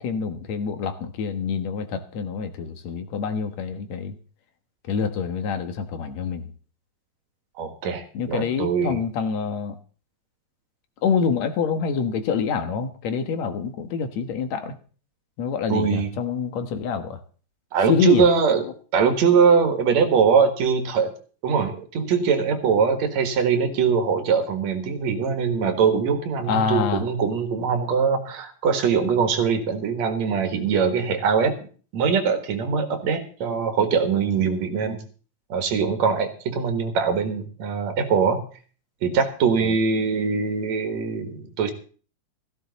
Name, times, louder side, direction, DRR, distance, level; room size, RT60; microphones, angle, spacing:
voice 1, 0.0-4.2 4.9-6.5 8.1-9.8 11.0-14.7 15.4-17.2 17.9-18.2 26.5-27.0 39.6-39.7, left 6 dB, 70° left, 8 dB, 2.5 m, -26 dB
voice 2, 7.6-9.0 15.7-16.1 17.7-18.7 18.9-21.1 21.4-31.5 31.9-35.0 35.5-38.4 39.0-41.7, right 6 dB, 65° right, 7 dB, 2.8 m, -22 dB
15.5 x 15.0 x 4.1 m, 0.41 s
omnidirectional pair, 3.4 m